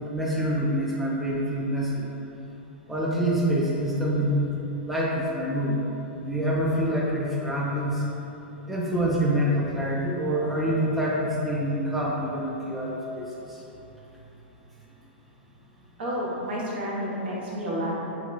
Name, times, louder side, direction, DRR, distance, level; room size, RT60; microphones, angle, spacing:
voice 1, 0.1-2.1 2.9-4.5 4.8-5.8 6.2-8.0 8.7-13.6, equal, ahead, -5 dB, 0.4 m, -26 dB
voice 2, 16.0-18.0, equal, 70° right, -6 dB, 0.9 m, -30 dB
2.8 x 2.2 x 3.9 m, 3.0 s
hypercardioid pair, 120°, 6 cm